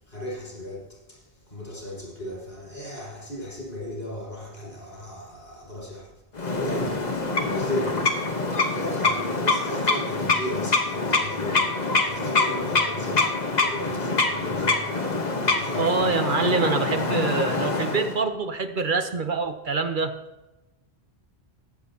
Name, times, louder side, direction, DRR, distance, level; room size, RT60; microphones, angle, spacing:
voice 1, 0.0-6.1 6.4-11.7 12.0-14.9 15.4-16.0, left 1 dB, 70° left, -4 dB, 5.3 m, -36 dB
sound 1, 6.4-18.2, left 3 dB, 45° left, 1.3 m, -25 dB
voice 2, 15.8-20.1, right 4 dB, 55° right, 7 dB, 1.0 m, -25 dB
21.0 x 8.3 x 2.8 m, 0.99 s
omnidirectional pair, 1.1 m